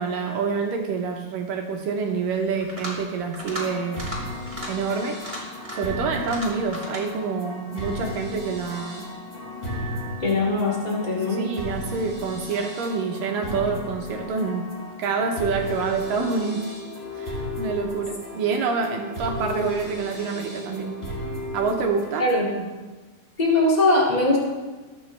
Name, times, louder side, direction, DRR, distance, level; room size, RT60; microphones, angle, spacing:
voice 1, 0.0-4.0 4.7-5.3 5.7-9.1 11.3-14.7 15.0-16.7 17.2-21.0 21.5-22.3 22.6-22.7, right 5 dB, 75° right, 2 dB, 2.1 m, -27 dB
sound 1, 2.6-3.0 3.3-3.6 3.9-4.2 4.5-4.7 5.1-5.9 6.2-7.0, equal, 5° right, 4.0 m, -35 dB
sound 2, 3.4-22.5, left 1 dB, 25° left, 0.8 m, -35 dB
voice 2, 10.2-11.5 22.2-22.4 23.4-24.4, left 2 dB, 65° left, -4 dB, 0.4 m, -21 dB
22.5 x 8.2 x 3.3 m, 1.3 s
omnidirectional pair, 4.9 m